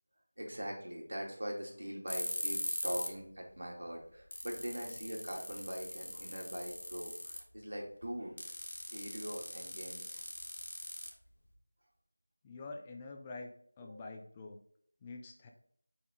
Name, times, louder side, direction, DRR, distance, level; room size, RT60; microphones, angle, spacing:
voice 1, 0.4-8.3 8.9-10.2, equal, 80° right, 0 dB, 2.5 m, -42 dB
sound 1, 2.1-3.2 3.5-3.6 4.0-4.1 4.3-7.5 8.4-11.5, left 1 dB, 85° left, 1.8 m, -41 dB
voice 2, 12.4-14.6 15.0-15.5, left 3 dB, 10° left, 3 dB, 0.4 m, -47 dB
7.0 x 4.3 x 3.7 m, 0.66 s
figure-of-eight pair, 175°, 0 cm